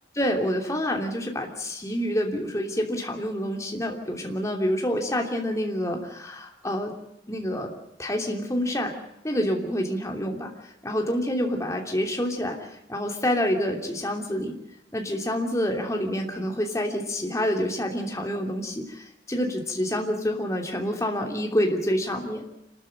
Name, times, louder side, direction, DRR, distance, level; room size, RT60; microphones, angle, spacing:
voice 1, 0.1-7.0 7.3-7.7 8.0-8.9 9.2-10.5 10.8-14.5 14.9-22.4, equal, 15° left, 2 dB, 3.0 m, -27 dB
27.5 x 13.0 x 8.9 m, 0.83 s
head